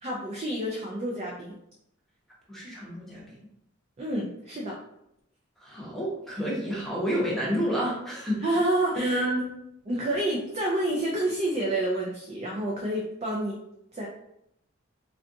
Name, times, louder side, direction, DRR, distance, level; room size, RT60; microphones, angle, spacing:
voice 1, 0.0-1.6 4.0-4.8 8.4-9.2 9.9-13.6 13.9-14.1, right 1 dB, 30° right, -3 dB, 0.4 m, -28 dB
voice 2, 2.5-3.2 5.6-8.6 9.0-9.4, equal, ahead, -5 dB, 0.8 m, -29 dB
3.4 x 2.4 x 2.6 m, 0.78 s
head